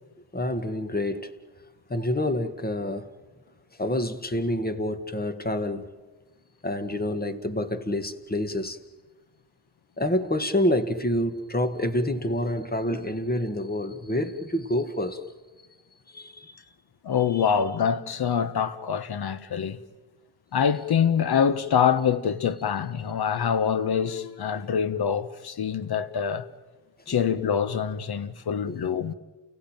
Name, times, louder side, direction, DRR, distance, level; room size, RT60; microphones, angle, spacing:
voice 1, 0.3-1.3 1.9-3.1 3.8-5.8 6.6-8.8 10.0-15.2 16.1-16.5 17.3-17.5 27.1-27.2 28.7-28.8, left 1 dB, 20° left, 2.1 m, -27 dB
voice 2, 17.0-19.8 20.5-26.4 27.1-29.1, left 7 dB, 60° left, 1.5 m, -25 dB
29.5 x 16.5 x 9.1 m
supercardioid pair, 55°, 42 cm